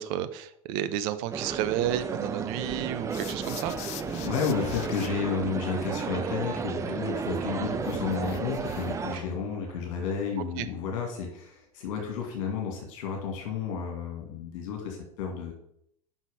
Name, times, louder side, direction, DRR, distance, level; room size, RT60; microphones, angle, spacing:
voice 1, 0.0-3.7 10.6-10.7, right 12 dB, 45° right, 11 dB, 0.8 m, -31 dB
sound 1, 1.3-9.2, right 6 dB, 15° right, 0.5 m, -33 dB
sound 2, 1.9-2.2 2.7-10.7 11.2-11.3, right 4 dB, 65° right, 2.8 m, -49 dB
sound 3, 3.1-5.1 7.8-9.1, left 13 dB, 35° left, 0.5 m, -42 dB
voice 2, 4.2-15.5, left 6 dB, 55° left, 1 dB, 2.1 m, -32 dB
6.3 x 5.8 x 5.5 m, 0.71 s
hypercardioid pair, 95°, 19 cm